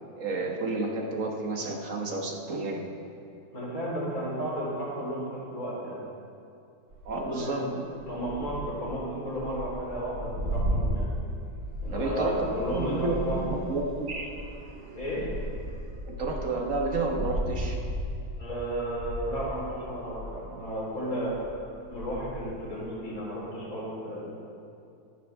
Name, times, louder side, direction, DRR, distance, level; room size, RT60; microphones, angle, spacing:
voice 1, 0.2-2.8 7.0-7.7 11.9-14.3 16.0-17.8, right 2 dB, 60° right, 1 dB, 1.6 m, -31 dB
voice 2, 3.5-6.0 7.2-7.8 8.1-11.1 11.8-13.5 14.9-15.3 18.4-21.3 21.9-24.4, equal, 65° left, -7 dB, 4.5 m, -33 dB
sound 1, 6.9-7.2 7.9-20.3 20.7-20.9 21.2-22.8, right 1 dB, 75° right, 2.8 m, -35 dB
sound 2, 11.6-16.3, right 4 dB, 30° right, 0.9 m, -50 dB
21.5 x 9.2 x 3.5 m, 2.5 s
omnidirectional pair, 1.6 m